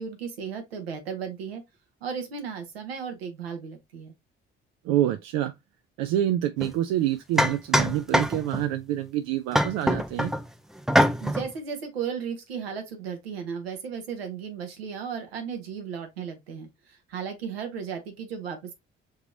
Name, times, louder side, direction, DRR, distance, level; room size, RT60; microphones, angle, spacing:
voice 1, 0.0-1.6 2.0-4.1 11.2-18.7, right 6 dB, 85° right, 0.9 m, -35 dB
voice 2, 4.8-5.5 6.0-10.3, right 12 dB, 65° right, 0.5 m, -27 dB
sound 1, 6.6-6.7 7.4-8.7 9.5-10.4 10.9-11.5, equal, ahead, 0.5 m, -23 dB
5.3 x 2.9 x 2.6 m
figure-of-eight pair, 45°, 30 cm